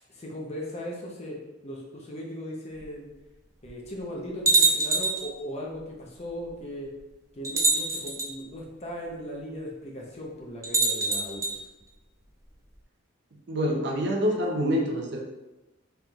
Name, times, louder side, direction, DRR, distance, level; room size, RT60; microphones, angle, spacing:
voice 1, 0.1-1.4 1.6-3.1 3.6-6.9 7.3-11.7, equal, 30° left, -2 dB, 0.7 m, -38 dB
sound 1, 2.8-2.9 3.7-3.8 4.5-5.3 6.5-6.6 7.4-8.3 10.6-11.5, right 3 dB, 15° right, 0.4 m, -24 dB
voice 2, 13.5-15.2, equal, 55° right, 0 dB, 0.6 m, -26 dB
4.4 x 3.4 x 2.4 m, 1.0 s
head